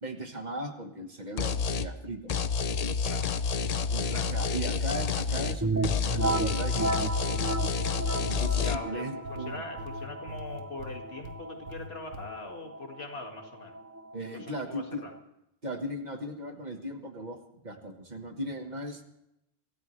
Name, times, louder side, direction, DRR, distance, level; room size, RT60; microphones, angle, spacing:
voice 1, 0.0-2.3 3.9-7.4 8.3-9.6 14.1-15.1 15.6-17.4 17.6-19.0, right 1 dB, 45° right, 5 dB, 1.6 m, -38 dB
sound 1, 1.4-1.9 2.3-5.6 5.8-8.8, left 5 dB, 45° left, 0.6 m, -29 dB
voice 2, 4.1-4.6 8.6-13.8 14.3-15.1, left 3 dB, 80° left, 3 dB, 2.3 m, -42 dB
sound 2, 4.6-6.0 6.5-7.9 8.4-8.8 9.2-11.4 11.7-12.3, left 1 dB, 75° right, 1.5 m, -43 dB
sound 3, 5.6-15.2, right 3 dB, 25° right, 0.4 m, -34 dB
25.0 x 14.0 x 3.2 m, 0.83 s
omnidirectional pair, 1.0 m